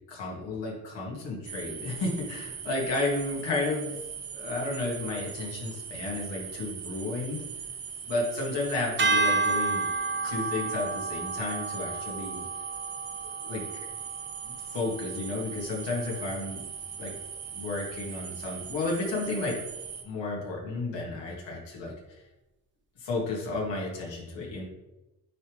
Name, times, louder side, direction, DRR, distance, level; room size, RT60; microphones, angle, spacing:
voice 1, 0.1-4.0 4.3-7.4 8.0-9.9 10.2-12.5 13.4-13.7 14.4-16.6 17.0-17.1 17.5-19.6 20.0-22.2 23.0-24.6, left 2 dB, 75° left, -3 dB, 2.3 m, -32 dB
sound 1, 1.5-20.0, right 7 dB, 65° right, 1.2 m, -40 dB
sound 2, 9.0-15.3, right 3 dB, 25° right, 0.9 m, -31 dB
9.3 x 3.7 x 3.2 m, 1.0 s
cardioid pair, 75°, 43 cm